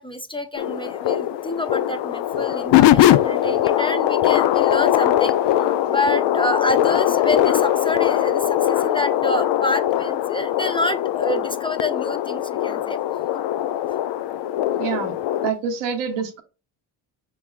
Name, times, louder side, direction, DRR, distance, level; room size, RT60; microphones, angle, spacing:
voice 1, 0.0-5.4 5.9-13.0 13.9-14.0, left 1 dB, 10° left, 8 dB, 0.6 m, -27 dB
sound 1, 0.6-15.5, left 12 dB, 65° left, 0.5 m, -21 dB
voice 2, 14.8-15.2 15.4-16.4, right 6 dB, 90° right, 5 dB, 1.0 m, -26 dB
6.0 x 3.4 x 2.4 m, 0.32 s
supercardioid pair, 55°, 47 cm